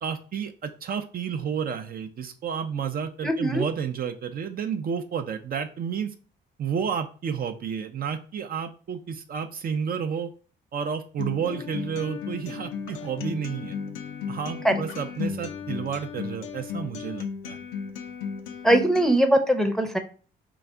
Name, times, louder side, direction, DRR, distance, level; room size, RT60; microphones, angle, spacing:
voice 1, 0.0-6.1 6.6-10.3 10.7-13.8 14.3-17.6, right 7 dB, 50° right, 7 dB, 0.5 m, -31 dB
voice 2, 3.2-3.6 14.6-14.7 18.6-20.0, right 1 dB, ahead, 4 dB, 0.6 m, -21 dB
Acoustic guitar, 11.2-19.2, left 6 dB, 90° left, 0.5 m, -35 dB
3.9 x 2.4 x 3.4 m, 0.38 s
cardioid pair, 90°, 20 cm